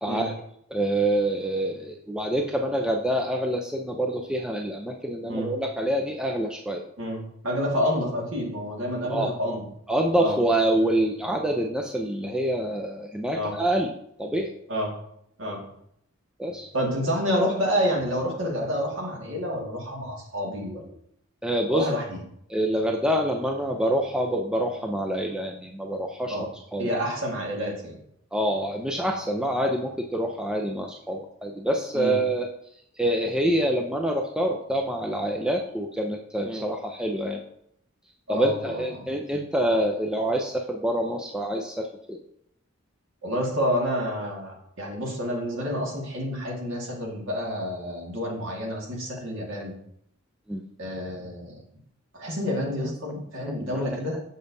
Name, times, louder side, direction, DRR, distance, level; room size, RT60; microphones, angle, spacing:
voice 1, 0.0-0.3 0.7-6.8 9.1-9.6 9.9-13.9 14.2-14.5 16.4-16.7 17.7-17.9 18.2-18.9 19.4-19.6 21.4-21.9 22.5-27.1 28.3-32.5 33.0-37.4 38.3-42.2 46.5-46.6 49.4-49.6 50.5-50.6 52.8-53.2 53.4-54.2, right 1 dB, 5° right, 2 dB, 0.4 m, -27 dB
voice 2, 7.0-9.6 10.2-10.4 13.3-13.5 14.7-14.9 15.4-15.6 16.7-21.0 21.7-22.2 26.3-26.5 26.8-28.0 32.0-32.2 38.3-39.1 43.2-49.8 50.8-51.6 52.1-54.2, equal, 65° right, -1 dB, 1.8 m, -29 dB
7.0 x 6.3 x 2.6 m, 0.72 s
head